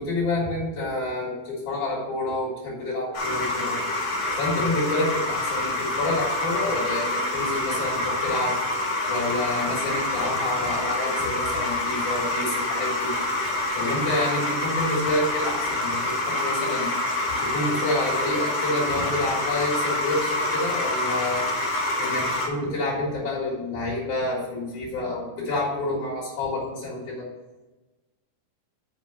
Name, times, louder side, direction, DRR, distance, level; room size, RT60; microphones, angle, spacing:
voice 1, 0.0-3.8 4.3-8.5 9.1-13.1 13.7-16.9 17.4-21.4 22.0-27.3, left 2 dB, 45° left, -5 dB, 4.3 m, -28 dB
sound 1, 3.1-22.5, left 2 dB, 60° left, 1.4 m, -27 dB
7.8 x 5.3 x 5.6 m, 1.1 s
omnidirectional pair, 5.4 m